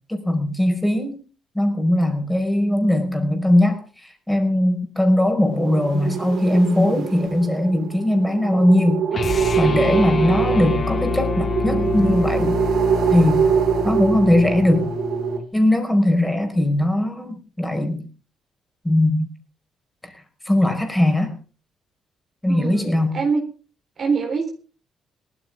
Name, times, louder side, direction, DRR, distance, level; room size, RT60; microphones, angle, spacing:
voice 1, 0.1-1.2 1.6-12.6 13.1-13.5 13.8-14.9 15.5-18.0 18.8-19.3 20.0-20.1 20.5-21.3 22.4-23.2, left 1 dB, 10° left, 5 dB, 5.1 m, -20 dB
sound 1, 5.5-15.4, right 8 dB, 75° right, 3.5 m, -24 dB
sound 2, 9.1-15.5, left 6 dB, 45° left, 0.7 m, -27 dB
voice 2, 22.5-23.4 24.0-24.5, right 5 dB, 50° right, 2 dB, 4.1 m, -24 dB
18.5 x 14.0 x 3.8 m, 0.37 s
cardioid pair, 90°, 0 cm